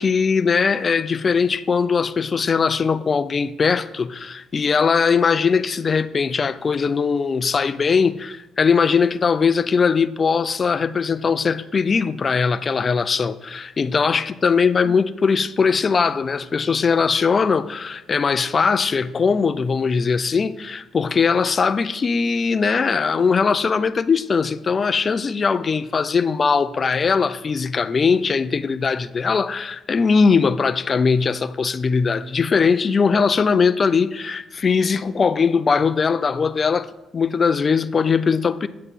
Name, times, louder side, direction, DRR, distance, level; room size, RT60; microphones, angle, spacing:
voice 1, 0.0-38.7, left 5 dB, 40° left, 0.4 m, -20 dB
9.2 x 7.6 x 4.1 m
cardioid pair, 90°, 0 cm